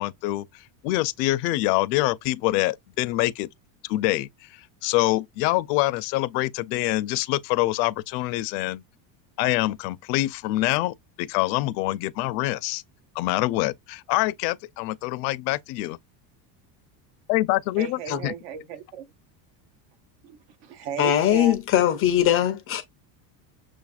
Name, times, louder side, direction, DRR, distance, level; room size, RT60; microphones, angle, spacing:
voice 1, 0.0-3.5 3.9-8.8 9.4-12.8 13.2-16.0 17.3-18.3, left 18 dB, 80° left, 0.5 m, -25 dB
voice 2, 17.8-19.1 20.2-21.6, right 7 dB, 60° right, 0.9 m, -36 dB
voice 3, 21.0-22.8, left 11 dB, 30° left, 0.4 m, -21 dB
6.3 x 2.5 x 2.3 m
cardioid pair, 150°, 49 cm